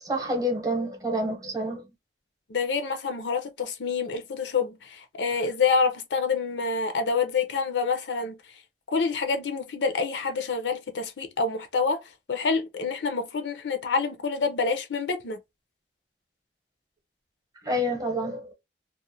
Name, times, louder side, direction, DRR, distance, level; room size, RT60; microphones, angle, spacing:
voice 1, 0.0-1.9 17.6-18.5, equal, 20° right, 0.8 m, -28 dB
voice 2, 2.5-8.4 8.9-12.0 12.3-15.4, left 4 dB, 80° left, 0.5 m, -27 dB
2.4 x 2.1 x 2.7 m
head